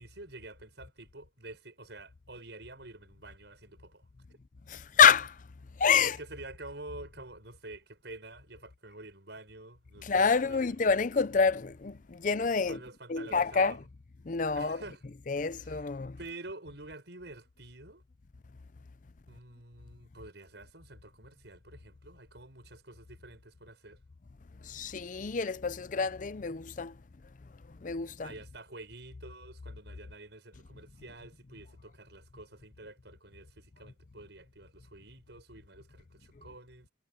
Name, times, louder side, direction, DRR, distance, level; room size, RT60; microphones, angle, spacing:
voice 1, 0.0-4.1 6.0-10.8 12.7-13.8 14.5-15.0 15.6-15.8 16.2-18.0 19.3-24.0 28.2-36.9, right 2 dB, 65° right, 7.2 m, -48 dB
voice 2, 4.7-5.4 5.8-6.2 10.0-12.8 13.1-13.8 14.3-14.8 15.3-16.2 24.6-26.9 27.8-28.3, left 6 dB, 45° left, 0.5 m, -27 dB
head